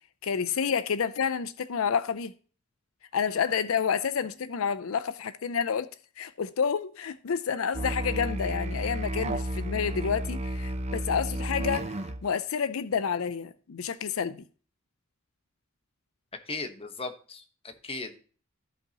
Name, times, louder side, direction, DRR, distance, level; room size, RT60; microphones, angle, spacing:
voice 1, 0.2-2.3 3.1-5.9 6.2-14.4, left 6 dB, 75° left, 0.5 m, -29 dB
Musical instrument, 7.7-12.2, right 1 dB, 30° right, 0.7 m, -32 dB
voice 2, 16.3-18.2, left 3 dB, 30° left, 1.2 m, -37 dB
14.5 x 5.5 x 2.9 m
head